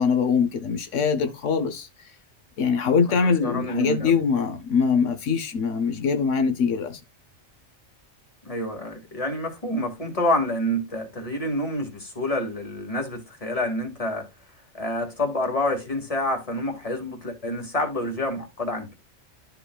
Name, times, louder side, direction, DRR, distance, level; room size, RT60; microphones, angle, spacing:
voice 1, 0.0-2.1 2.6-7.0, left 6 dB, 85° left, 1.2 m, -23 dB
voice 2, 3.2-4.2 8.4-14.3 14.7-18.9, left 1 dB, 30° left, 2.1 m, -28 dB
12.5 x 4.6 x 2.3 m
omnidirectional pair, 1.2 m